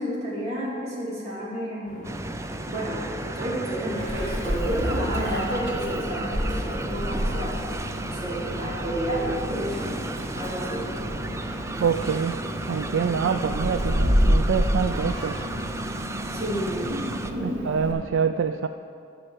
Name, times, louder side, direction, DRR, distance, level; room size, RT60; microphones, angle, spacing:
voice 1, 0.0-2.2 2.7-7.6 8.0-10.0 10.3-10.9 16.3-17.7, equal, 35° right, -7 dB, 3.1 m, -30 dB
sound 1, 1.9-15.7, left 1 dB, 40° left, 1.7 m, -42 dB
sound 2, 2.0-17.3, right 2 dB, 15° right, 0.4 m, -34 dB
Meow, 4.0-17.9, equal, 70° right, 2.0 m, -29 dB
voice 2, 11.8-12.4 12.7-15.3 17.4-18.7, right 6 dB, 90° right, 8 dB, 0.4 m, -25 dB
11.0 x 6.6 x 7.4 m, 2.5 s
head